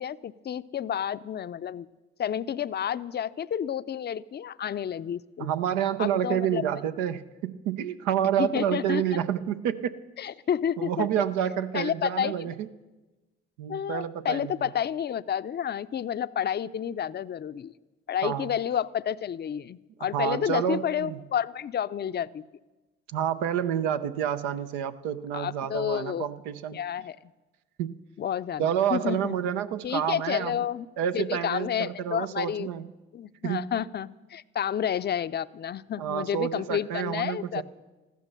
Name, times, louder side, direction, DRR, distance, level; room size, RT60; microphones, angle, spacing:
voice 1, 0.0-1.9 2.2-5.6 6.0-6.6 8.4-9.2 10.2-11.1 11.7-12.5 13.7-17.7 18.1-22.5 25.3-26.3 26.7-27.2 28.2-29.4 29.8-30.9 31.1-32.7 33.1-37.6, left 9 dB, 35° left, 15 dB, 0.5 m, -30 dB
voice 2, 5.4-10.0 10.8-12.7 13.6-14.7 18.2-18.5 20.1-21.2 23.1-26.8 27.8-27.9 28.6-30.6 31.0-32.9 33.4-33.6 36.0-37.6, right 9 dB, 85° right, 10 dB, 0.7 m, -29 dB
14.5 x 12.0 x 6.7 m, 1.2 s
hypercardioid pair, 55°, 30 cm